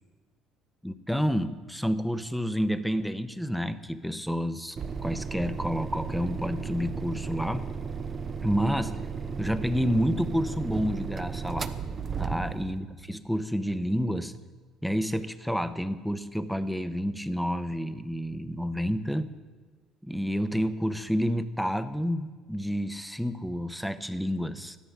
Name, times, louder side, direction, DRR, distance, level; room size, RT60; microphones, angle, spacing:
voice 1, 0.8-4.8 5.0-7.7 8.4-9.0 9.4-11.7 12.2-14.3 14.8-19.3 20.0-24.8, equal, ahead, 11 dB, 1.0 m, -29 dB
sound 1, 4.8-12.8, right 5 dB, 40° right, 0.9 m, -34 dB
14.0 x 12.0 x 6.0 m, 1.4 s
supercardioid pair, 85°, 0 cm